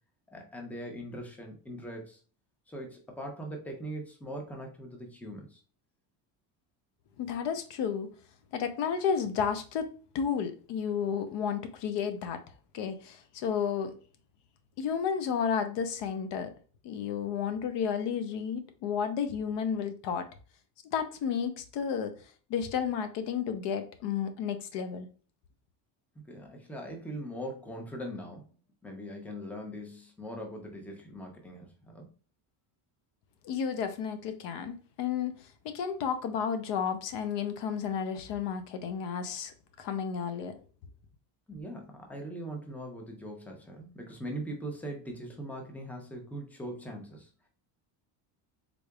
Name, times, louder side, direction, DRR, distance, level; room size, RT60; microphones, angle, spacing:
voice 1, 0.3-2.2 2.7-5.6 26.3-28.5 28.8-32.1 41.5-47.5, right 1 dB, 5° left, 2 dB, 0.7 m, -41 dB
voice 2, 7.2-8.1 8.5-9.9 10.1-12.4 12.7-13.9 14.8-16.5 16.8-20.3 20.9-22.1 22.5-25.1 33.4-40.5, left 7 dB, 65° left, 9 dB, 0.6 m, -32 dB
3.8 x 3.3 x 2.2 m, 0.39 s
cardioid pair, 120°, 47 cm